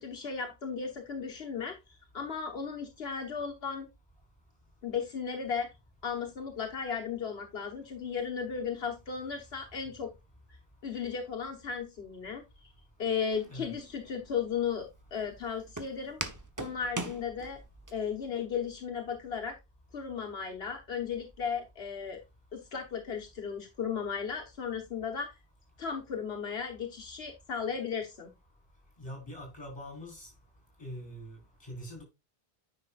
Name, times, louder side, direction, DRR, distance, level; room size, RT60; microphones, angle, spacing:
voice 1, 0.0-3.9 4.8-5.7 6.0-10.1 10.8-12.7 13.0-16.2 16.6-17.6 17.9-19.5 19.9-22.2 22.5-25.3 25.8-28.3, left 6 dB, 75° left, 1.4 m, -35 dB
Walk footsteps, 13.3-17.9, right 2 dB, 20° right, 0.9 m, -41 dB
voice 2, 29.0-30.3 30.8-32.0, equal, 25° left, 4.4 m, -43 dB
9.5 x 6.1 x 2.4 m
omnidirectional pair, 1.0 m